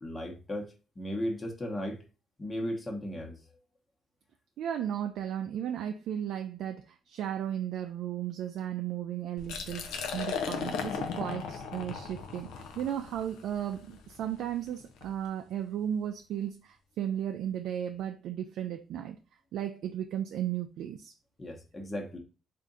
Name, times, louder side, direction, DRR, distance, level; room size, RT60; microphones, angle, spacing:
voice 1, 0.0-2.0 2.4-3.3 21.4-22.2, equal, 25° left, 1.0 m, -36 dB
voice 2, 4.6-12.5 12.8-19.2 19.5-21.1, right 10 dB, 80° right, 0.3 m, -35 dB
Liquid, 9.4-15.1, left 6 dB, 90° left, 0.6 m, -37 dB
3.6 x 2.5 x 3.9 m
cardioid pair, 90°, 0 cm